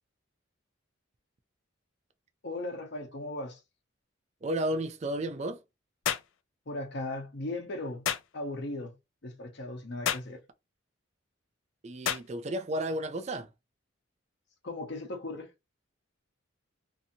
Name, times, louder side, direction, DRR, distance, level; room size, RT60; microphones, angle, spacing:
voice 1, 2.4-3.6 6.7-8.1 8.3-8.9 9.2-10.4 14.6-15.5, left 2 dB, 55° left, 0.8 m, -37 dB
voice 2, 4.4-5.6 11.8-13.5, right 1 dB, 35° right, 0.3 m, -32 dB
sound 1, 6.0-6.3 8.0-8.3 10.0-10.3 12.0-12.3, left 9 dB, 75° left, 0.4 m, -30 dB
2.7 x 2.6 x 2.7 m
head